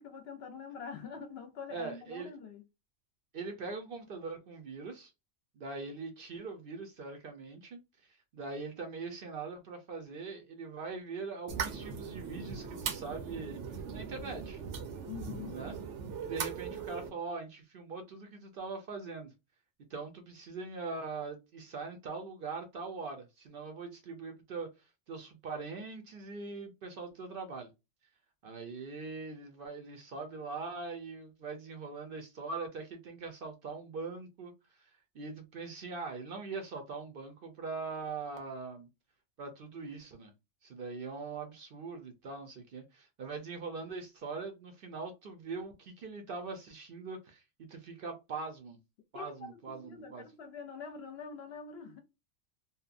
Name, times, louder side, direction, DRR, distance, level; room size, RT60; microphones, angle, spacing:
voice 1, 0.0-2.7 15.1-15.6 49.1-52.0, left 6 dB, 65° left, 0.8 m, -45 dB
voice 2, 1.7-2.3 3.3-5.1 5.5-7.8 8.1-14.6 15.5-15.8 16.2-19.3 19.9-24.7 25.1-27.7 28.4-38.9 39.4-40.3 40.6-48.8 49.1-50.3, right 4 dB, 60° right, 0.7 m, -42 dB
sound 1, 11.5-17.1, right 6 dB, 80° right, 1.0 m, -39 dB
2.7 x 2.2 x 2.4 m
omnidirectional pair, 1.2 m